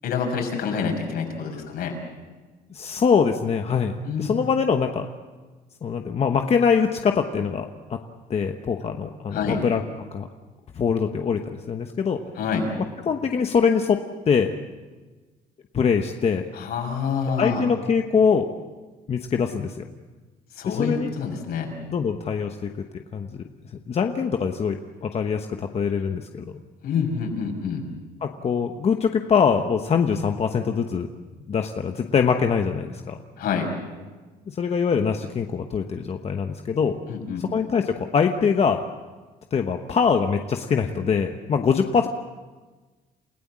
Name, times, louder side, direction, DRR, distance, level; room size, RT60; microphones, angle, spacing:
voice 1, 0.0-2.0 4.0-4.3 9.3-9.6 12.4-12.7 16.5-17.7 20.5-21.7 26.8-27.8 33.4-33.7 37.1-37.4, left 6 dB, 70° left, 2 dB, 6.1 m, -27 dB
voice 2, 2.7-5.1 5.8-8.0 8.3-9.8 10.1-10.3 10.7-12.2 13.1-14.5 15.7-16.4 17.4-18.5 19.1-19.8 20.6-21.1 21.9-23.4 23.9-26.4 28.2-31.1 31.5-33.2 34.5-37.0 37.4-38.8 39.5-42.1, left 6 dB, 40° left, 5 dB, 1.1 m, -23 dB
29.0 x 16.0 x 7.5 m, 1.3 s
cardioid pair, 110°, 17 cm